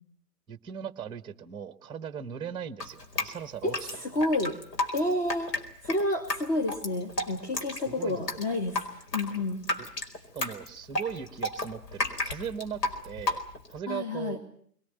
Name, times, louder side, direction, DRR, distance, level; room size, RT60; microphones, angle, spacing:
voice 1, 0.5-4.0 7.9-8.2 10.3-13.4 13.7-14.4, right 7 dB, 10° right, 12 dB, 1.1 m, -38 dB
Drip, 2.8-13.8, left 2 dB, 85° left, 4.8 m, -33 dB
voice 2, 3.6-4.6 4.9-5.6 5.8-8.9 9.1-9.6 13.9-14.4, left 1 dB, 25° left, 4 dB, 2.4 m, -29 dB
22.0 x 19.5 x 9.1 m, 0.62 s
hypercardioid pair, 140°, 47 cm